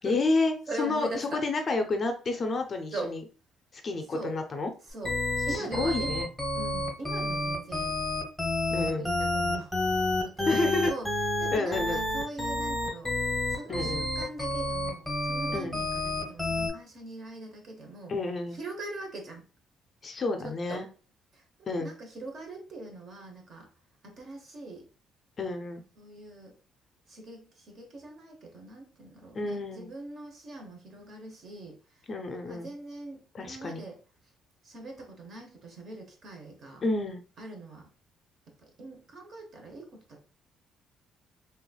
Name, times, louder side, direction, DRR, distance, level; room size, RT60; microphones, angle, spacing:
voice 1, 0.0-3.2 3.7-4.7 5.5-6.3 8.7-9.1 10.4-10.9 11.5-12.0 13.7-14.1 15.5-15.8 18.1-18.6 20.0-20.9 21.7-21.9 25.4-25.8 29.3-29.9 32.1-32.7 33.3-33.8 36.8-37.2, left 3 dB, 30° left, 0.5 m, -30 dB
voice 2, 0.7-1.4 2.9-3.1 4.1-4.4 4.9-5.1 5.4-6.1 6.6-8.0 8.7-11.1 11.4-13.1 13.5-18.1 18.5-19.4 20.4-20.8 21.3-21.4 21.8-23.7 24.0-24.9 26.0-26.5 27.1-31.8 32.5-34.0 34.6-36.8 37.4-37.9 38.8-40.2, right 2 dB, 45° right, 0.9 m, -42 dB
sound 1, 5.0-16.7, left 2 dB, ahead, 1.0 m, -29 dB
3.3 x 3.0 x 2.3 m
cardioid pair, 155°, 0 cm